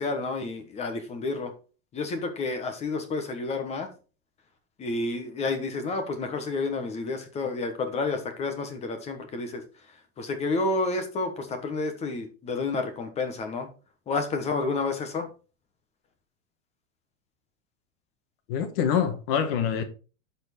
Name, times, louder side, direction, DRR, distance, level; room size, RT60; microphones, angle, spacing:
voice 1, 0.0-1.5 1.9-3.9 4.8-9.6 10.2-13.7 14.1-15.3, left 3 dB, 15° left, 1.1 m, -30 dB
voice 2, 18.5-19.8, left 8 dB, 45° left, 1.4 m, -25 dB
12.0 x 4.4 x 4.2 m
supercardioid pair, 170°, 39 cm